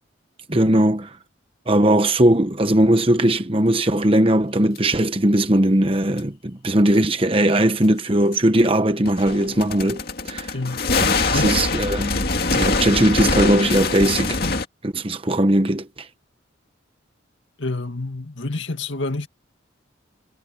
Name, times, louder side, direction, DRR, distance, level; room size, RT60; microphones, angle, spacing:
voice 1, 0.5-1.1 1.7-10.5 11.0-12.2 12.5-14.4 14.8-16.1, right 1 dB, 25° right, 1.1 m, -19 dB
sound 1, 4.8-4.9 6.2-6.3 8.3-8.4 9.1-14.7, left 3 dB, 50° left, 2.4 m, -23 dB
voice 2, 10.5-10.8 11.3-11.6 17.6-19.3, left 2 dB, 70° left, 2.1 m, -28 dB
head